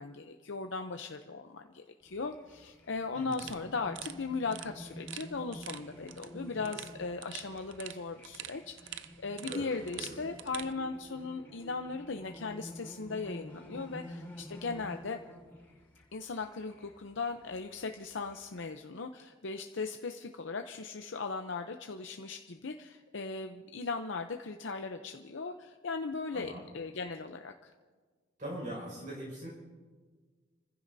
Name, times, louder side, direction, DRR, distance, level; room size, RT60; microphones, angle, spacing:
voice 1, 0.0-15.2 16.1-27.7, left 4 dB, 65° left, 5 dB, 0.7 m, -38 dB
sound 1, 2.0-18.6, equal, 10° left, 5.7 m, -50 dB
sound 2, 3.3-10.7, right 11 dB, 70° right, 0.5 m, -47 dB
voice 2, 9.9-10.3 26.3-26.7 28.4-29.5, right 1 dB, 40° right, -4 dB, 5.7 m, -41 dB
29.0 x 15.5 x 2.7 m, 1.5 s
head